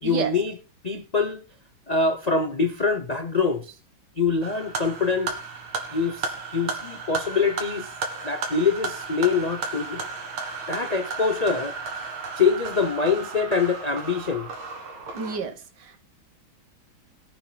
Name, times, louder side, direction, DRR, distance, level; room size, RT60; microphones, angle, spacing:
voice 1, 0.0-0.5 0.8-1.4 1.9-3.7 4.2-5.4 5.9-7.9 8.2-10.1 10.7-11.8 12.4-14.5, left 4 dB, 60° left, 0.4 m, -24 dB
sound 1, 4.4-15.4, right 4 dB, 80° right, 2.8 m, -34 dB
voice 2, 15.1-16.0, right 5 dB, 55° right, 1.9 m, -30 dB
21.5 x 8.5 x 2.3 m
omnidirectional pair, 2.2 m